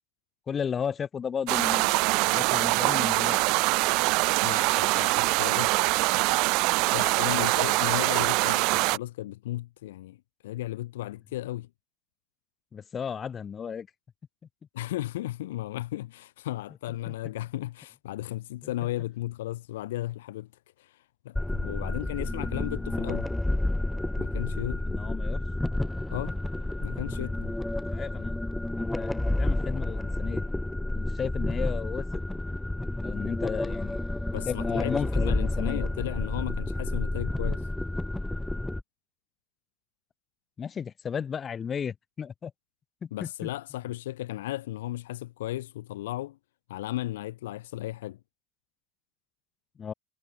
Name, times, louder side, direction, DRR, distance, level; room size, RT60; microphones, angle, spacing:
voice 1, 0.5-2.0 2.3-3.4 7.3-7.5 12.7-13.9 17.1-17.2 24.9-25.4 27.9-28.4 28.8-30.4 30.9-32.2 33.0-34.0 34.3-35.8 40.6-42.5 43.0-43.5 49.8-49.9, left 7 dB, 35° left, 5.3 m, -34 dB
sound 1, 1.5-9.0, right 28 dB, 65° right, 0.4 m, -24 dB
voice 2, 4.4-5.7 6.9-10.2 10.4-11.7 14.7-20.5 20.8-21.0 21.2-23.3 24.2-24.8 26.1-26.4 26.8-27.5 34.3-37.6 43.1-46.4 46.7-48.2, left 15 dB, 85° left, 2.9 m, -35 dB
sound 2, 21.4-38.8, left 1 dB, 5° left, 2.2 m, -30 dB
supercardioid pair, 90°, 0 cm